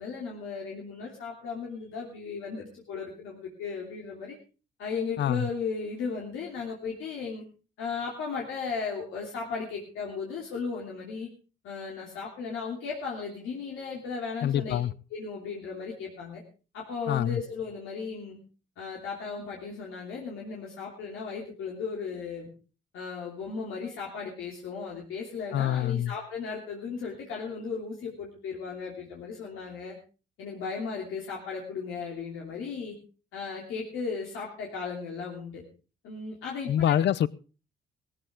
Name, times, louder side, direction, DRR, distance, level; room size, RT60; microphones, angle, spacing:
voice 1, 0.0-4.3 4.8-7.4 7.8-11.3 11.6-14.8 15.1-16.4 16.7-18.4 18.8-22.5 22.9-30.0 30.4-33.0 33.3-35.6 36.0-36.9, left 5 dB, 90° left, 3.0 m, -36 dB
voice 2, 14.4-14.9 17.1-17.4 25.5-26.1 36.7-37.3, left 11 dB, 60° left, 0.7 m, -25 dB
17.5 x 14.0 x 3.7 m
cardioid pair, 90°, 20 cm